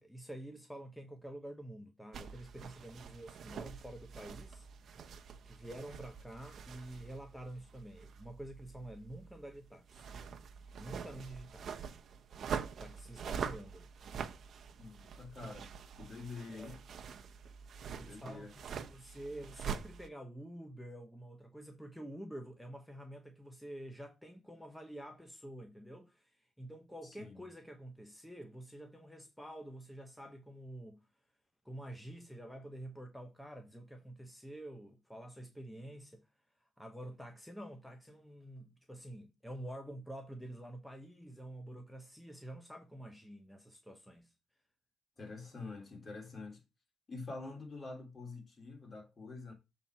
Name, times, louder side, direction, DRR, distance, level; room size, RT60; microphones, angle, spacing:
voice 1, 0.0-4.7 5.4-10.1 10.8-11.9 12.8-13.9 16.5-16.8 18.0-31.1 31.6-36.3 36.6-44.3, right 1 dB, ahead, 1.1 m, -48 dB
sound 1, 2.1-20.1, right 7 dB, 60° right, 0.9 m, -45 dB
voice 2, 14.8-15.7 16.0-16.8 17.9-18.5 27.0-27.5 45.2-46.6 47.1-49.5, left 3 dB, 35° left, 3.1 m, -46 dB
7.1 x 4.2 x 4.4 m
cardioid pair, 90°, 0 cm